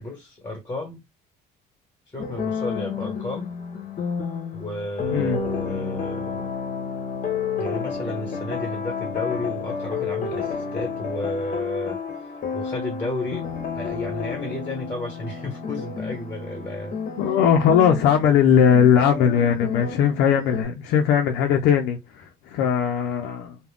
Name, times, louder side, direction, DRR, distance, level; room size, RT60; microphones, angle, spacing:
voice 1, 0.0-1.0 2.1-3.5 4.5-6.6 7.5-12.0 12.5-17.0, left 1 dB, 20° left, 1.1 m, -32 dB
sound 1, 2.2-20.6, left 6 dB, 50° left, 0.8 m, -31 dB
voice 2, 5.1-5.4 17.2-23.6, left 8 dB, 85° left, 0.5 m, -19 dB
2.4 x 2.1 x 3.5 m
cardioid pair, 110°, 17 cm